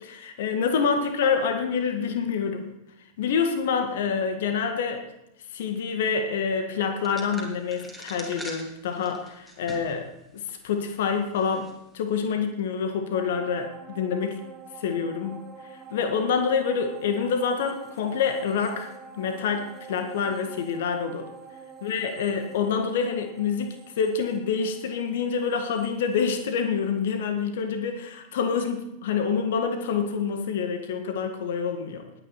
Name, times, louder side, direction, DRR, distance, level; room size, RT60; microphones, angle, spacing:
voice 1, 0.0-2.7 3.2-5.0 5.5-14.4 14.8-15.4 15.9-21.3 21.8-32.1, left 6 dB, 55° left, 7 dB, 1.8 m, -27 dB
sound 1, 7.0-10.0 10.4-10.5 11.4-11.7, equal, 10° left, 2.9 m, -42 dB
sound 2, 13.1-26.8 27.2-27.3, right 5 dB, 20° right, 2.3 m, -47 dB
19.5 x 9.5 x 4.4 m, 0.86 s
figure-of-eight pair, 90°, 0 cm